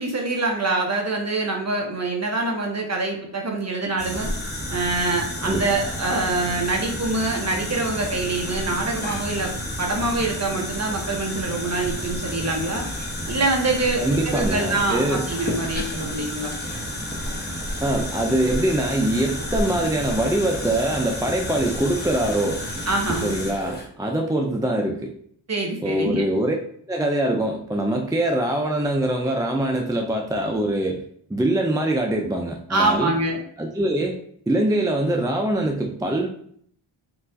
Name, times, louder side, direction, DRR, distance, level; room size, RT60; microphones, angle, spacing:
voice 1, 0.0-4.3 4.7-9.5 9.8-12.9 13.3-16.5 22.9-23.4 25.5-26.2 32.7-33.4, right 2 dB, 30° right, 1 dB, 1.0 m, -25 dB
sound 1, 4.0-23.9, equal, 20° left, 1.0 m, -30 dB
voice 2, 14.0-15.3 17.8-22.6 23.2-25.1 25.8-26.6 26.9-31.0 31.3-33.1 33.6-34.2 34.5-36.3, right 1 dB, 10° right, 2 dB, 0.3 m, -23 dB
4.5 x 2.5 x 3.9 m, 0.62 s
wide cardioid pair, 120°, 49 cm